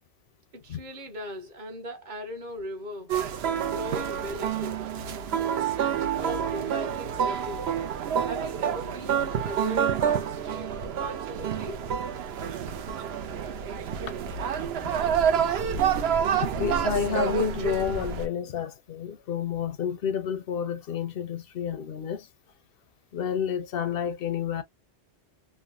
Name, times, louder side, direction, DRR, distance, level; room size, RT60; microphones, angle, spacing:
voice 1, 0.5-3.1 3.7-4.8 5.4-7.7 8.3-11.8, left 1 dB, 45° right, 1.0 m, -39 dB
sound 1, 3.1-18.3, right 8 dB, 75° right, 0.8 m, -28 dB
voice 2, 5.2-5.6 14.5-14.9 16.4-22.3 23.1-24.6, left 8 dB, 65° left, 0.7 m, -30 dB
3.3 x 2.1 x 2.5 m
omnidirectional pair, 1.1 m